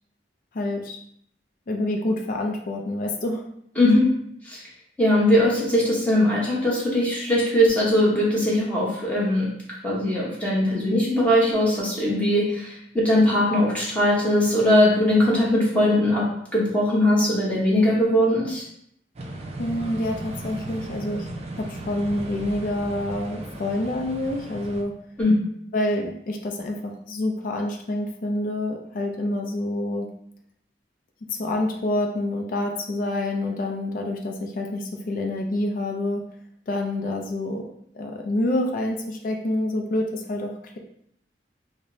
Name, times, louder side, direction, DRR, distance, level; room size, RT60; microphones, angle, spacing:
voice 1, 0.5-1.0 1.7-3.4 19.6-21.3 21.5-24.9 25.7-30.1 31.3-36.2 36.7-37.6 37.9-40.8, left 1 dB, 50° left, 2 dB, 0.4 m, -27 dB
voice 2, 5.0-9.5 9.8-16.2 16.5-18.6 25.2-25.3, left 1 dB, 10° left, -6 dB, 1.0 m, -20 dB
sound 1, 19.1-24.8, right 1 dB, 35° right, 0.4 m, -36 dB
4.8 x 2.0 x 2.7 m, 0.70 s
head